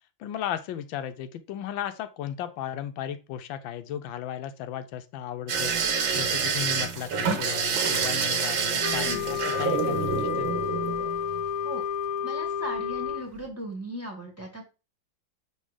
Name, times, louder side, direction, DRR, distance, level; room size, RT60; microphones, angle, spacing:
voice 1, 0.2-5.7 6.1-10.5, left 10 dB, 85° left, 10 dB, 1.4 m, -35 dB
sound 1, 5.5-11.5 12.8-13.1 13.4-13.5, right 6 dB, 85° right, 1.8 m, -27 dB
Wind instrument woodwind instrument, 8.8-13.3, left 8 dB, 65° left, 1.0 m, -30 dB
voice 2, 8.9-9.3 11.6-11.8 12.2-14.6, equal, 10° right, 0 dB, 1.4 m, -37 dB
5.4 x 3.8 x 4.8 m, 0.31 s
omnidirectional pair, 2.1 m